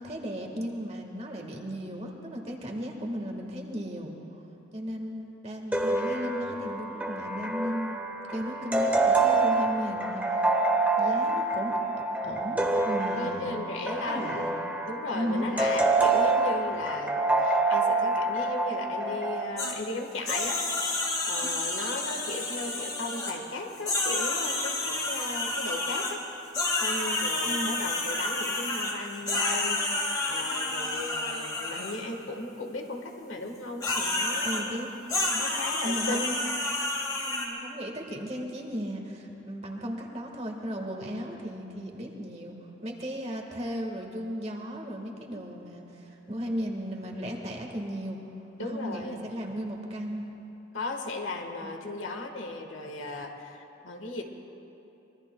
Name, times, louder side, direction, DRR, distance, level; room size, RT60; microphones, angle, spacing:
voice 1, 0.0-4.1 4.7-8.0 8.3-10.2 11.0-11.7 12.2-13.5 14.0-14.5 15.1-15.4 21.8-22.0 27.4-27.8 34.4-35.4 35.8-36.4 37.2-42.5 42.8-48.2 48.6-50.3 51.6-51.8, equal, 30° right, 1 dB, 1.5 m, -35 dB
sound 1, 5.7-19.4, right 2 dB, 10° right, 1.0 m, -27 dB
voice 2, 13.1-14.5 14.9-20.6 21.2-26.2 26.7-29.8 30.3-34.8 35.4-36.5 48.6-49.3 50.7-54.2, left 2 dB, 75° left, 3 dB, 1.4 m, -36 dB
sound 2, 19.6-19.7 20.3-23.3 23.7-26.1 26.5-32.0 33.8-34.6 35.1-37.5, left 2 dB, 20° left, 1.9 m, -30 dB
25.0 x 22.0 x 2.3 m, 2.9 s
head